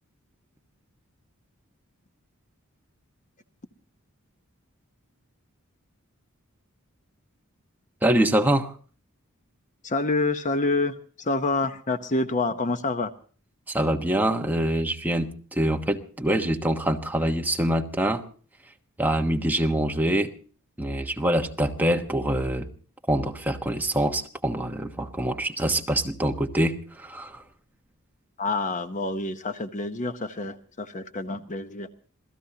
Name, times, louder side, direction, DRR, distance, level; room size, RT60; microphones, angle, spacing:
voice 1, 8.0-8.7 13.7-18.2 19.0-20.3 20.8-22.7 23.1-27.4, right 1 dB, 10° right, 3 dB, 1.2 m, -25 dB
voice 2, 9.8-13.1 28.4-31.9, left 2 dB, 35° left, 9 dB, 0.8 m, -27 dB
27.0 x 17.0 x 2.8 m, 0.41 s
head